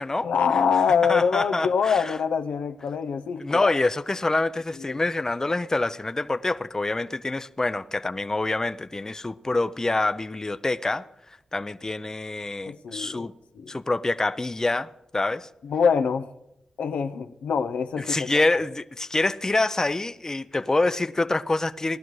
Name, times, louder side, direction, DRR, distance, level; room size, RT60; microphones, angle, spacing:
voice 1, 0.2-3.7 4.9-5.0 12.7-13.3 13.6-13.7 15.6-16.3 16.8-18.3, left 6 dB, 80° left, 0.6 m, -24 dB
voice 2, 1.1-2.2 3.4-11.1 11.5-13.3 13.7-15.5 18.0-22.0, left 2 dB, 25° left, 0.6 m, -26 dB
18.5 x 11.5 x 3.2 m
cardioid pair, 50°, 2 cm